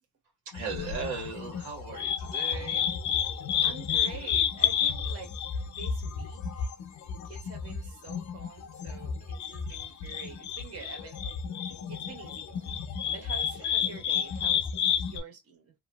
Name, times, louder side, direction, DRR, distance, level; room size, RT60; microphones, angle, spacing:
voice 1, 0.4-2.9 13.5-13.6, right 4 dB, 85° right, 1.6 m, -37 dB
sound 1, 0.5-15.2, left 8 dB, 70° left, 0.7 m, -31 dB
voice 2, 3.6-5.3 5.6-6.7 7.2-11.4 11.9-12.8 13.1-14.7 15.0-15.7, right 6 dB, 50° right, 1.6 m, -46 dB
3.0 x 2.5 x 2.2 m
cardioid pair, 90°, 30 cm